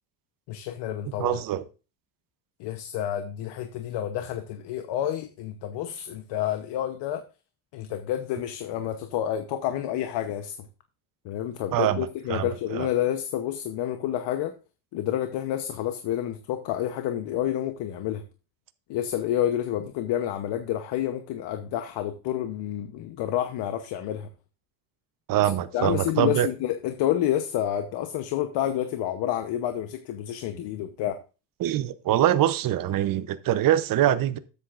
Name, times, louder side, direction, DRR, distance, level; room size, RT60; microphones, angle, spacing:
voice 1, 0.5-1.4 2.6-7.2 7.7-10.6 11.2-14.5 14.9-18.2 18.9-24.3 25.4-31.2, left 11 dB, 80° left, 1.0 m, -29 dB
voice 2, 1.2-1.6 11.7-12.5 12.7-12.9 25.3-26.5 31.6-34.4, right 12 dB, 55° right, 0.8 m, -24 dB
13.0 x 8.2 x 2.5 m
cardioid pair, 120°, 41 cm